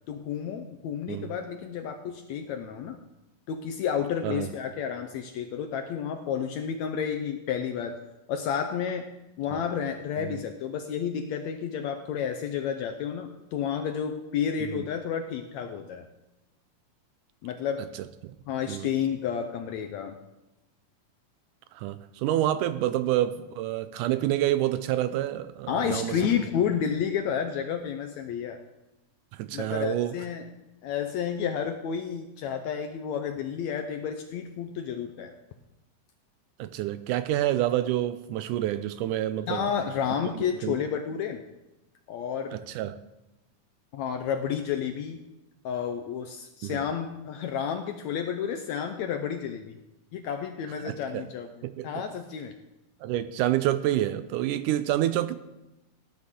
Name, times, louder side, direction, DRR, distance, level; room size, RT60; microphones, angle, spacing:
voice 1, 0.1-3.0 3.5-8.0 8.3-9.1 9.4-16.1 17.4-17.9 18.5-20.2 25.7-28.6 29.5-30.4 30.8-35.3 39.5-41.4 42.1-42.6 43.9-45.2 45.6-49.8 50.1-51.5 51.8-52.5, left 8 dB, 80° left, 6 dB, 1.7 m, -31 dB
voice 2, 21.7-26.2 29.3-30.2 36.6-39.7 40.4-40.8 42.5-43.0 46.6-46.8 50.8-51.2 51.6-51.9 53.0-55.4, right 13 dB, 80° right, 12 dB, 2.0 m, -28 dB
18.0 x 9.8 x 3.7 m, 0.96 s
omnidirectional pair, 3.8 m